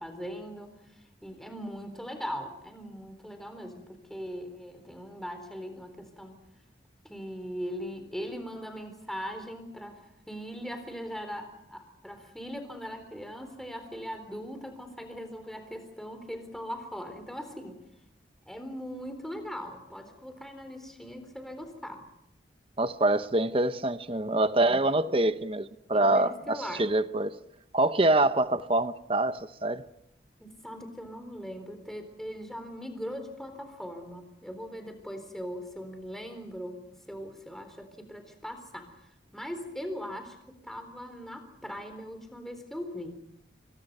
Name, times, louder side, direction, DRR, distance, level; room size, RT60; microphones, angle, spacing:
voice 1, 0.0-6.4 7.0-17.8 18.5-22.0 24.3-24.8 25.1-25.2 25.9-26.9 30.4-38.9 39.3-40.4 40.6-43.2, equal, ahead, 3.9 m, -40 dB
voice 2, 22.8-27.4 27.7-29.8, right 2 dB, 30° right, 0.8 m, -25 dB
27.5 x 24.5 x 5.5 m
head